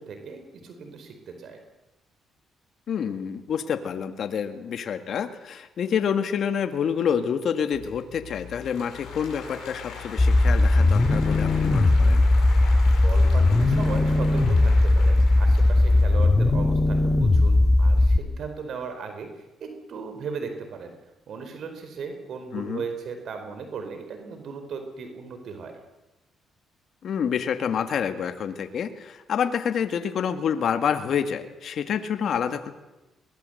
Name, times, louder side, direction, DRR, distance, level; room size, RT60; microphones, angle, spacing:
voice 1, 0.0-1.6 13.0-20.9 21.3-25.7, right 5 dB, 65° right, 6 dB, 4.3 m, -37 dB
voice 2, 2.9-12.2 22.5-22.8 27.0-32.7, left 7 dB, 60° left, 8 dB, 1.9 m, -28 dB
Applause / Crowd, 7.7-16.5, left 5 dB, 80° left, 7.1 m, -41 dB
sound 1, 10.2-18.2, left 2 dB, 25° left, 1.7 m, -19 dB
23.0 x 20.0 x 8.0 m, 1.0 s
cardioid pair, 90°, 0 cm